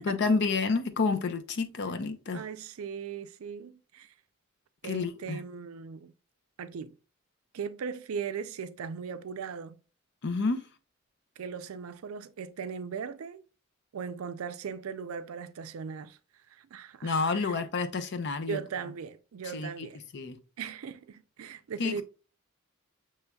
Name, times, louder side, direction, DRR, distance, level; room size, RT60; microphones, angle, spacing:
voice 1, 0.0-2.4 4.8-5.4 10.2-10.6 17.0-18.6 19.5-19.7 20.1-20.4 21.8-22.0, left 4 dB, 55° left, 0.5 m, -29 dB
voice 2, 2.3-4.1 4.8-6.1 6.6-6.9 7.5-9.8 11.4-13.4 13.9-16.2 16.5-17.6 18.5-20.0 20.6-22.0, right 6 dB, 85° right, 0.4 m, -38 dB
6.8 x 3.1 x 2.3 m
head